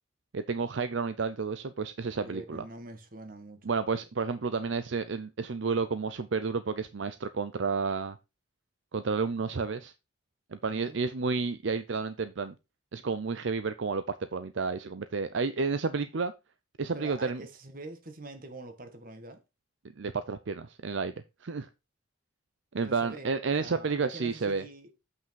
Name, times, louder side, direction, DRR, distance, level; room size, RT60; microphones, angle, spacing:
voice 1, 0.3-2.6 3.6-8.2 8.9-9.9 10.5-12.5 12.9-16.3 16.8-17.4 20.0-21.1 21.4-21.7 22.7-24.6, right 4 dB, 65° right, 0.6 m, -31 dB
voice 2, 2.2-3.7 10.7-11.0 16.9-19.4 22.8-23.3 23.6-24.9, right 2 dB, 45° right, 1.5 m, -45 dB
8.1 x 5.9 x 4.6 m
head